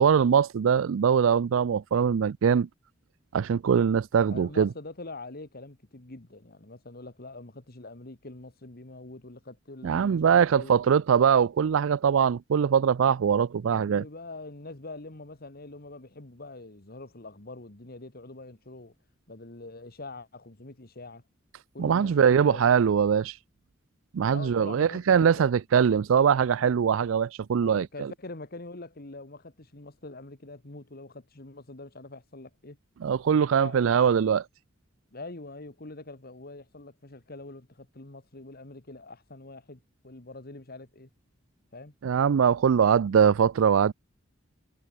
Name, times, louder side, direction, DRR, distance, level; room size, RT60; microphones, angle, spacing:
voice 1, 0.0-2.7 3.3-4.7 9.8-14.0 21.8-23.4 24.1-28.1 33.0-34.4 42.0-43.9, right 7 dB, 80° right, 0.4 m, -22 dB
voice 2, 4.3-10.8 13.8-18.9 19.3-21.2 21.7-22.6 24.3-25.5 27.6-32.8 33.3-33.8 35.1-41.1 41.7-41.9 42.8-42.9, left 2 dB, 50° left, 1.9 m, -44 dB
head